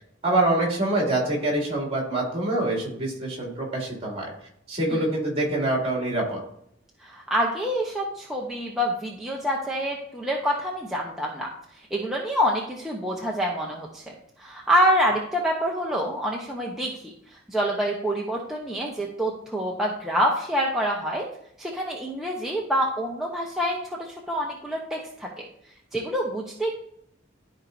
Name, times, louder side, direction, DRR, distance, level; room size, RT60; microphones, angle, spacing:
voice 1, 0.2-4.3 4.7-6.4, right 1 dB, 30° right, -1 dB, 2.6 m, -25 dB
voice 2, 7.0-11.5 11.9-14.0 14.4-17.1 17.5-21.2 21.6-25.4 25.9-26.8, equal, ahead, -3 dB, 0.9 m, -26 dB
13.0 x 4.6 x 2.7 m, 0.71 s
head